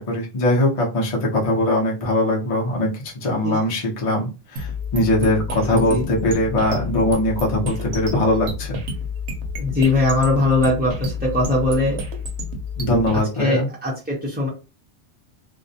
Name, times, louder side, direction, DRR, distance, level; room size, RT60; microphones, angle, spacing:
voice 1, 0.0-8.8 12.8-13.7, left 1 dB, 35° left, -2 dB, 0.6 m, -21 dB
sound 1, 4.6-13.2, left 3 dB, 70° right, 0.9 m, -30 dB
voice 2, 5.7-6.0 9.6-12.0 13.4-14.5, left 2 dB, 15° right, -6 dB, 0.4 m, -20 dB
2.4 x 2.1 x 2.6 m, 0.30 s
omnidirectional pair, 1.2 m